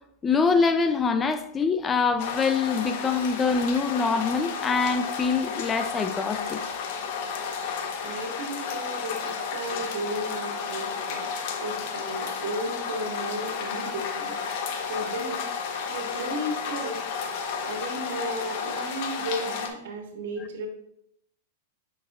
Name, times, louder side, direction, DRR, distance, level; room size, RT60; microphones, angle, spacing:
voice 1, 0.2-6.6, left 5 dB, 20° left, 0.4 m, -24 dB
sound 1, 2.2-19.7, left 6 dB, 55° left, 1.1 m, -32 dB
voice 2, 8.0-11.3 11.6-14.4 14.9-15.4 15.9-17.0 17.6-20.7, right 1 dB, 75° right, 1.6 m, -34 dB
8.4 x 6.0 x 2.4 m
hypercardioid pair, 135°, 0 cm